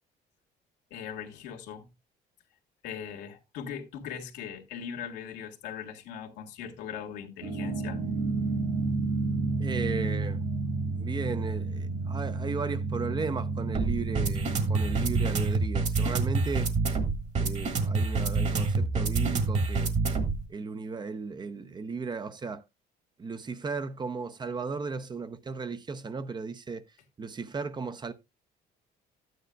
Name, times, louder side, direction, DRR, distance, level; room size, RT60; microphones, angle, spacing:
voice 1, 0.9-1.9 2.8-8.0, left 8 dB, 90° left, 1.7 m, -40 dB
sound 1, 7.4-20.5, right 3 dB, 40° right, 1.6 m, -28 dB
voice 2, 9.6-10.4 11.0-16.7 17.4-19.9 20.5-22.6 23.2-26.8 27.2-28.1, right 4 dB, 25° right, 0.6 m, -35 dB
12.5 x 9.3 x 2.3 m
cardioid pair, 110°, 17 cm